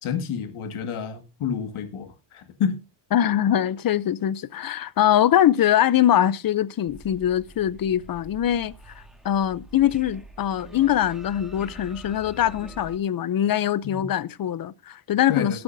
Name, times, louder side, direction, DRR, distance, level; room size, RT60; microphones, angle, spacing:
voice 1, 0.0-2.8 13.8-14.0 15.3-15.6, left 7 dB, 90° left, 1.9 m, -29 dB
voice 2, 3.1-15.6, left 11 dB, 45° left, 0.6 m, -23 dB
sound 1, 6.9-13.0, right 1 dB, ahead, 1.8 m, -45 dB
19.0 x 7.8 x 2.6 m
cardioid pair, 135°, 48 cm